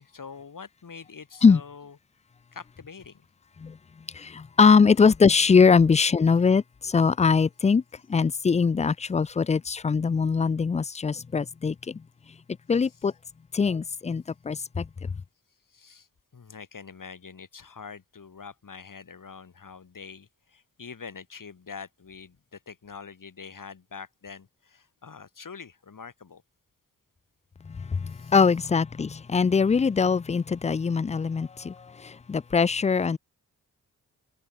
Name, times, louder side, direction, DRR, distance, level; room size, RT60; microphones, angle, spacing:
voice 1, 0.0-2.0 2.5-3.2 12.7-13.1 15.7-16.1 16.3-26.4 28.1-28.6, left 5 dB, 60° left, 4.5 m, -45 dB
voice 2, 4.1-7.8 8.1-12.0 12.7-13.1 13.5-15.1 27.7-33.2, left 5 dB, 20° left, 0.3 m, -22 dB
cardioid pair, 60°, 36 cm